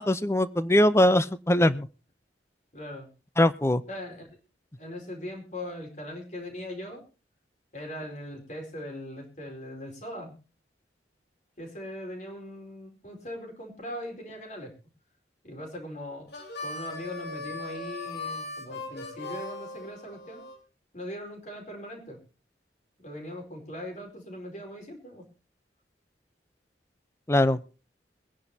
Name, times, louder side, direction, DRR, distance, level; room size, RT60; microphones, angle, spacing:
voice 1, 0.0-1.9 3.4-3.8 27.3-27.6, left 1 dB, 15° left, 14 dB, 0.7 m, -21 dB
voice 2, 2.7-3.1 3.9-4.3 4.8-7.0 7.7-10.3 11.6-14.7 15.4-16.3 16.6-20.4 20.9-22.2 23.0-25.2, left 1 dB, 45° left, 1 dB, 4.6 m, -40 dB
Harmonica, 16.3-20.6, left 2 dB, 65° left, 3.7 m, -38 dB
23.5 x 10.5 x 2.8 m, 0.34 s
head